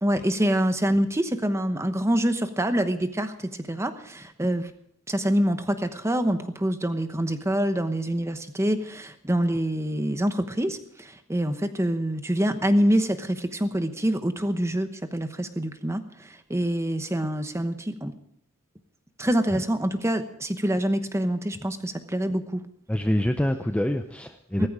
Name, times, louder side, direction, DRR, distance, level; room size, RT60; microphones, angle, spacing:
voice 1, 0.0-4.7 5.1-18.1 19.2-22.6 24.6-24.7, right 1 dB, 15° right, 9 dB, 1.0 m, -26 dB
voice 2, 22.9-24.7, left 1 dB, 5° left, 6 dB, 0.6 m, -25 dB
15.5 x 14.0 x 4.8 m, 0.71 s
head